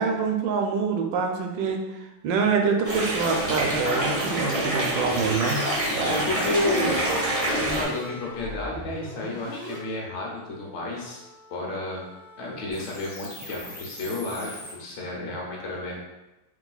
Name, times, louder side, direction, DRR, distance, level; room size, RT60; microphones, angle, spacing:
voice 1, 0.0-5.7 5.9-6.3, right 5 dB, 75° right, 2 dB, 1.2 m, -26 dB
sound 1, 2.8-7.8, right 1 dB, 30° right, 0.7 m, -26 dB
sound 2, 5.3-14.7, left 1 dB, 60° left, 0.5 m, -40 dB
voice 2, 6.0-7.0 7.5-11.2 11.5-12.0 12.4-16.0, left 2 dB, 75° left, -2 dB, 1.6 m, -31 dB
5.1 x 3.2 x 2.3 m, 1.0 s
omnidirectional pair, 2.1 m